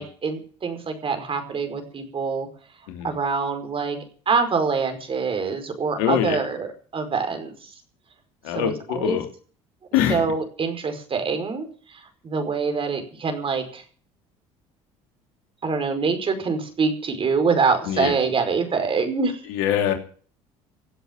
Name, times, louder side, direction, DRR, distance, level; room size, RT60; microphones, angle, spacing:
voice 1, 0.0-2.5 3.0-4.0 4.3-7.7 8.5-9.2 10.1-13.8 15.6-19.4, right 5 dB, 40° right, 7 dB, 5.0 m, -25 dB
voice 2, 6.0-6.4 8.4-9.3 9.9-10.2 17.9-18.2 19.5-19.9, left 10 dB, 80° left, 4 dB, 3.1 m, -23 dB
16.5 x 8.1 x 9.4 m, 0.43 s
supercardioid pair, 75°, 14 cm